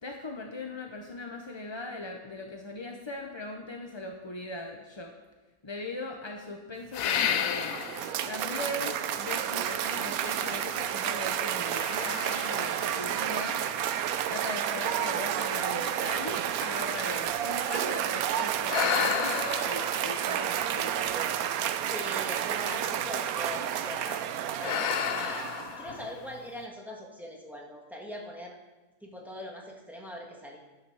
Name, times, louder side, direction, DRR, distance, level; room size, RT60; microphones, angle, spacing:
voice 1, 0.0-5.1 5.6-7.8 8.3-13.6 14.3-21.1, left 2 dB, 30° left, 2 dB, 0.5 m, -39 dB
sound 1, 6.9-8.2 8.8-8.9 10.3-11.2 11.7-14.1 14.8-14.9 15.3-15.4 15.7-18.0 18.7-21.4 22.6-23.1 23.4-23.7 24.6-26.5, left 9 dB, 75° left, 1.0 m, -33 dB
Cheering / Applause, 7.3-25.9, right 10 dB, 80° right, 1.0 m, -31 dB
voice 2, 21.9-24.2 24.6-28.6 29.0-30.6, equal, ahead, -1 dB, 1.6 m, -41 dB
10.5 x 7.6 x 6.3 m, 1.2 s
omnidirectional pair, 1.5 m